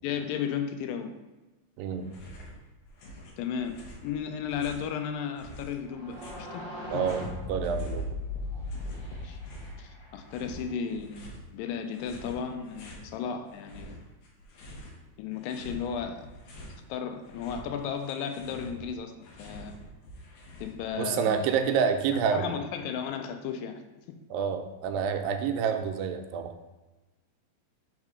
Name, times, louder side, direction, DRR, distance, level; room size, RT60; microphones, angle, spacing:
voice 1, 0.0-1.1 3.4-3.8 4.0-6.6 6.9-7.0 9.2-9.4 9.8-11.2 11.5-14.0 15.2-16.3 16.9-19.7 20.6-21.5 22.3-23.8, left 7 dB, 85° left, 7 dB, 2.2 m, -34 dB
voice 2, 1.8-2.1 6.9-7.2 7.5-8.1 21.0-22.5 24.3-26.5, right 7 dB, 90° right, 6 dB, 2.3 m, -28 dB
sound 1, 2.0-2.6 2.8-4.9 5.4-8.1 8.3-9.8 10.2-11.4 11.9-13.1 13.5-15.0 15.3-16.8 17.1-21.0, equal, 70° left, 2.1 m, -47 dB
sound 2, 5.9-10.7, left 2 dB, 35° left, 2.4 m, -38 dB
5.3 x 3.7 x 4.8 m, 1.1 s
omnidirectional pair, 4.0 m